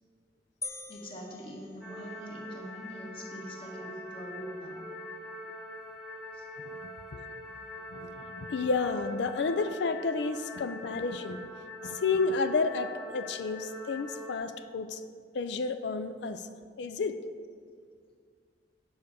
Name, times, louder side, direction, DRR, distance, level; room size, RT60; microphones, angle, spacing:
sound 1, 0.6-2.4, left 3 dB, 15° left, 0.5 m, -44 dB
voice 1, 0.9-4.8 6.3-6.4, equal, 30° left, -2 dB, 1.7 m, -43 dB
sound 2, 1.8-14.4, left 1 dB, 5° right, 1.2 m, -44 dB
voice 2, 7.9-11.4 11.8-15.0 15.3-16.5 16.8-17.2, left 4 dB, 70° left, 10 dB, 0.4 m, -31 dB
9.1 x 5.0 x 6.8 m, 2.1 s
head